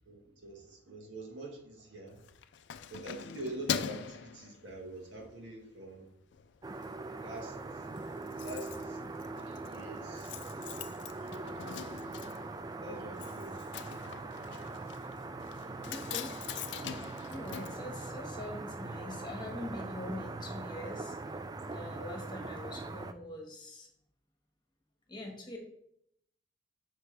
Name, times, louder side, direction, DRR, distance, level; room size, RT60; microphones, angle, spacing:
voice 1, 0.1-2.3 2.9-6.1 7.2-7.5 8.4-9.0 9.4-11.0 11.3-11.5 12.8-13.8 14.2-14.6, right 1 dB, 80° right, 1 dB, 1.6 m, -46 dB
Keys jangling, 2.1-5.2 5.6-5.9 6.2-6.9 7.2-7.3 7.5-7.6 7.8-18.6 18.9-19.0, left 8 dB, 70° left, 0.4 m, -42 dB
sound 1, 6.6-23.1, right 3 dB, 20° right, 0.3 m, -42 dB
voice 2, 15.9-16.3 17.3-21.4 21.6-23.9 25.1-25.6, left 1 dB, 25° left, 1 dB, 1.5 m, -44 dB
7.7 x 6.0 x 3.3 m, 0.72 s
head